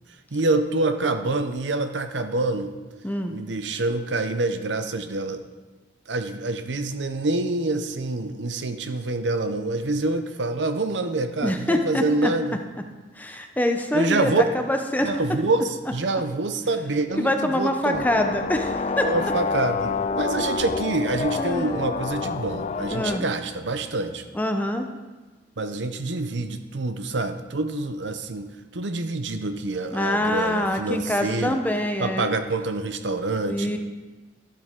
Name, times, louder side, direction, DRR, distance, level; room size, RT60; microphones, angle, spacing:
voice 1, 0.3-2.7 3.3-5.4 6.1-12.6 13.9-14.4 15.0-18.0 19.1-24.2 25.6-31.6 32.0-33.7, right 2 dB, 80° right, 8 dB, 0.8 m, -26 dB
voice 2, 3.0-3.3 11.4-12.3 13.2-15.1 17.2-19.1 21.4-21.9 22.9-23.3 24.3-24.9 29.9-32.3 33.5-33.8, left 1 dB, 10° left, 5 dB, 0.7 m, -25 dB
sound 1, 17.9-23.2, left 4 dB, 40° left, 0.3 m, -28 dB
12.0 x 7.7 x 3.7 m, 1.2 s
head